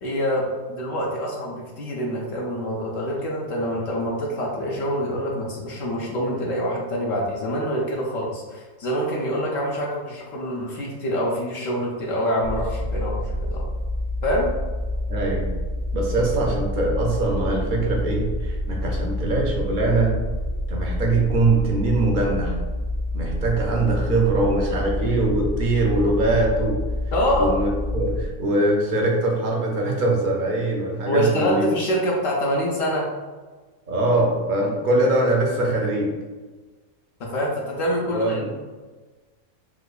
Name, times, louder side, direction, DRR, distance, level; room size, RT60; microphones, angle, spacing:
voice 1, 0.0-13.6 14.2-14.5 27.1-27.5 31.0-33.1 37.2-38.5, equal, 75° left, -3 dB, 1.0 m, -25 dB
sound 1, 12.4-28.3, left 1 dB, 25° left, 0.3 m, -28 dB
voice 2, 15.1-15.5 15.9-20.1 20.7-22.6 23.1-26.8 27.4-31.7 33.9-36.1 38.1-38.4, right 2 dB, 60° right, -1 dB, 0.5 m, -22 dB
4.6 x 2.2 x 2.3 m, 1.3 s
omnidirectional pair, 1.4 m